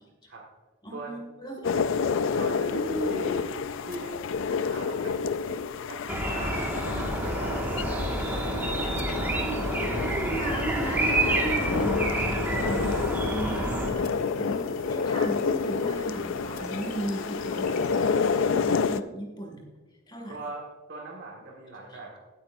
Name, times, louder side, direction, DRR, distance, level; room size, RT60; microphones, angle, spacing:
voice 1, 0.8-1.8 2.5-3.2 7.8-7.9 9.2-19.6 20.1-20.3, right 1 dB, 20° left, 2 dB, 2.1 m, -36 dB
sound 1, 1.6-19.0, left 5 dB, 60° left, 0.4 m, -29 dB
voice 2, 2.4-2.7 3.1-4.3 4.6-8.2 13.4-13.7 20.3-22.2, right 2 dB, 50° right, -3 dB, 1.8 m, -41 dB
sound 2, 6.1-13.9, right 1 dB, 10° right, 1.8 m, -28 dB
sound 3, 6.7-18.6, left 1 dB, 40° left, 2.5 m, -41 dB
16.5 x 9.2 x 2.6 m, 1.3 s
head